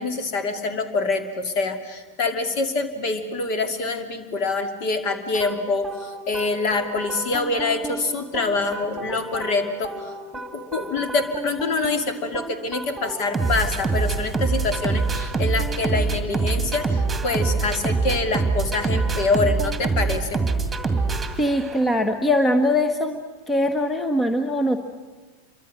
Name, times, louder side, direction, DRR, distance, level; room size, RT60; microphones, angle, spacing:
voice 1, 0.0-20.4, left 3 dB, 45° left, 8 dB, 2.6 m, -25 dB
sound 1, 5.3-22.0, right 4 dB, 10° right, 2.2 m, -26 dB
voice 2, 21.4-23.2 23.5-24.8, left 1 dB, 10° left, 8 dB, 1.2 m, -21 dB
27.5 x 24.0 x 6.4 m, 1.3 s
figure-of-eight pair, 90°, 0 cm